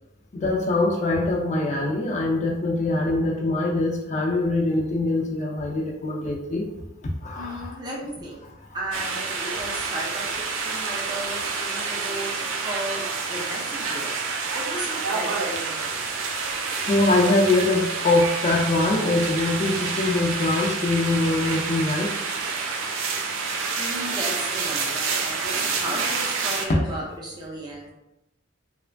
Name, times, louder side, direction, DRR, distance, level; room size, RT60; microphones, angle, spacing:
voice 1, 0.3-6.7 7.0-7.8 16.9-22.1, left 2 dB, 35° left, -1 dB, 0.3 m, -23 dB
voice 2, 7.3-8.4 8.7-14.1 14.5-16.2 23.7-27.9, right 1 dB, 20° right, -3 dB, 0.5 m, -35 dB
sound 1, 8.9-26.6, right 4 dB, 80° right, 0.4 m, -28 dB
2.9 x 2.1 x 2.5 m, 0.90 s
head